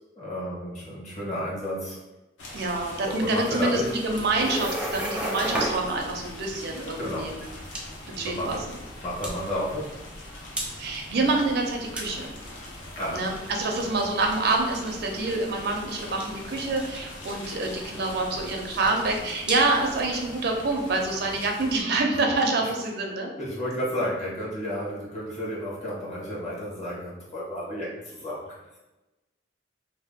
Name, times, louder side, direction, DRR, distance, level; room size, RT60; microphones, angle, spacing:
voice 1, 0.1-2.0 3.0-3.9 7.0-7.3 8.4-8.7 9.0-10.0 13.0-13.3 22.6-22.7 23.4-28.6, equal, 40° left, -6 dB, 1.0 m, -32 dB
sound 1, 2.4-21.8, left 1 dB, 80° left, 0.6 m, -42 dB
voice 2, 2.5-7.3 8.2-8.6 10.8-12.3 13.1-23.3, right 2 dB, 60° right, 2 dB, 0.5 m, -26 dB
sound 2, 4.0-20.3, right 1 dB, 5° right, 0.5 m, -37 dB
2.7 x 2.1 x 3.4 m, 1.0 s
head